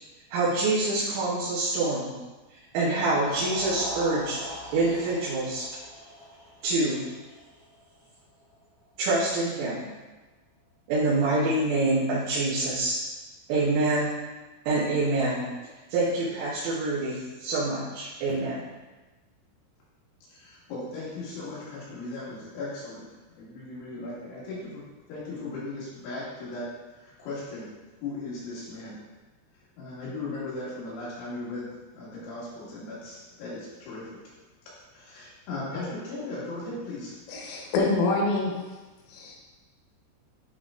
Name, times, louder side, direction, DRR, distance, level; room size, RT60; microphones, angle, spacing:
voice 1, 0.3-2.1 2.7-4.4 4.7-5.7 6.6-7.0 9.0-9.8 10.9-13.0 13.5-14.1 14.7-15.5 15.9-18.7, right 2 dB, 80° right, -9 dB, 3.9 m, -26 dB
sound 1, 3.1-9.3, equal, 55° right, 0.8 m, -42 dB
voice 2, 20.3-23.1 23.3-24.8 25.1-27.7 28.0-29.0 29.8-34.2 34.9-37.1, left 2 dB, 70° left, -8 dB, 4.3 m, -37 dB
voice 3, 37.3-38.6 39.1-39.4, left 3 dB, 90° left, -1 dB, 3.9 m, -26 dB
11.0 x 3.9 x 3.7 m, 1.2 s
omnidirectional pair, 5.7 m